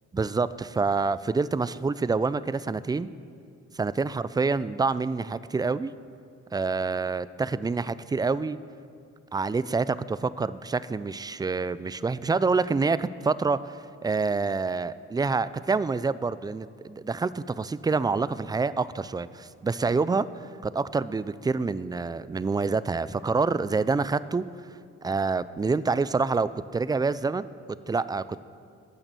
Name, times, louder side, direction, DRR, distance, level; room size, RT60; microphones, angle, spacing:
voice 1, 0.1-3.1 3.7-5.9 6.5-8.6 9.3-13.8 14.0-20.3 20.6-24.4 25.0-27.5 27.9-28.5, right 4 dB, 15° right, 17 dB, 0.3 m, -27 dB
12.0 x 8.6 x 6.8 m, 2.3 s
cardioid pair, 90°, 30 cm